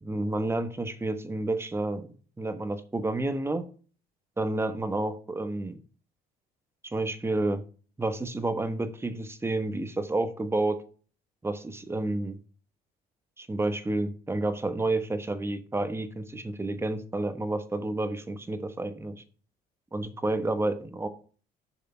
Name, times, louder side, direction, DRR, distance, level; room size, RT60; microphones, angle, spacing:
voice 1, 0.0-2.1 2.4-3.6 4.4-5.8 6.8-7.6 8.0-10.8 11.4-12.4 13.4-19.2 19.9-21.1, right 2 dB, 15° right, 10 dB, 1.1 m, -30 dB
7.1 x 6.5 x 4.3 m, 0.39 s
cardioid pair, 110°, 17 cm